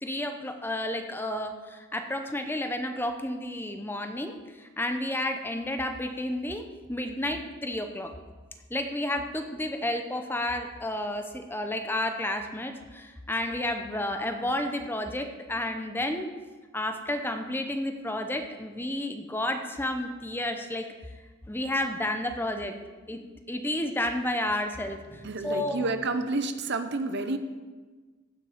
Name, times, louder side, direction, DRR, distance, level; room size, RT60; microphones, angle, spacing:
voice 1, 0.0-8.1 8.7-16.3 16.7-20.9 21.5-22.7 23.1-23.2 23.5-25.9, left 1 dB, 10° left, 6 dB, 0.7 m, -31 dB
voice 2, 25.1-27.4, right 3 dB, 55° right, 9 dB, 0.7 m, -30 dB
15.5 x 6.5 x 5.1 m, 1.3 s
head